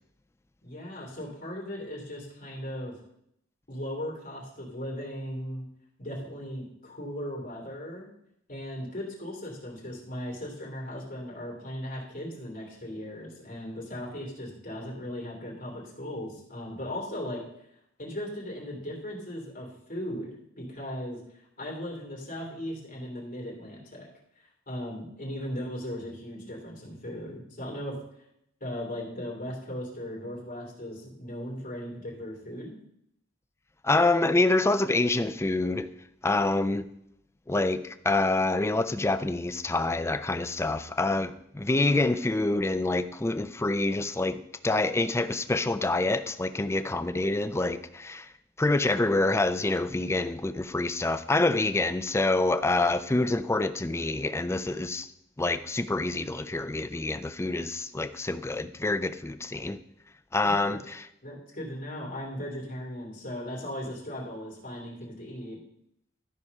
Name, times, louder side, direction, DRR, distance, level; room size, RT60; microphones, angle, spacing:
voice 1, 0.6-3.0 3.7-5.6 6.0-8.1 8.5-17.4 18.0-21.2 21.6-24.1 24.4-28.0 28.6-32.8 60.4-60.8 61.2-65.6, equal, 45° left, 3.1 m, -37 dB
voice 2, 33.8-35.9 36.2-36.8 37.5-48.3 48.6-55.1 55.4-59.8 60.3-61.0, left 2 dB, 15° left, 0.4 m, -26 dB
12.5 x 4.8 x 5.4 m
head